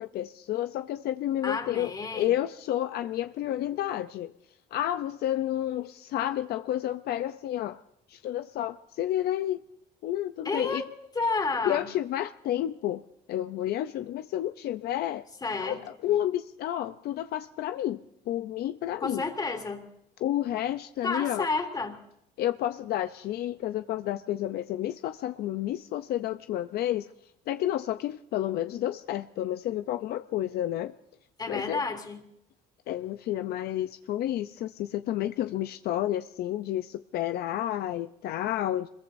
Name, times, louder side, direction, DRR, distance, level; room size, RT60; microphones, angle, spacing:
voice 1, 0.0-4.3 4.7-7.8 8.1-9.6 10.0-10.8 11.6-13.0 13.3-15.2 15.6-18.0 18.3-19.3 20.2-21.5 22.4-27.1 27.5-30.9 31.5-31.8 32.9-38.9, left 12 dB, 70° left, 0.6 m, -30 dB
voice 2, 1.4-2.3 10.4-10.8 11.1-11.9 15.4-15.8 19.0-19.8 21.0-21.9 31.4-32.2, left 3 dB, 25° left, 3.0 m, -30 dB
25.0 x 22.0 x 2.6 m
cardioid pair, 110°, 17 cm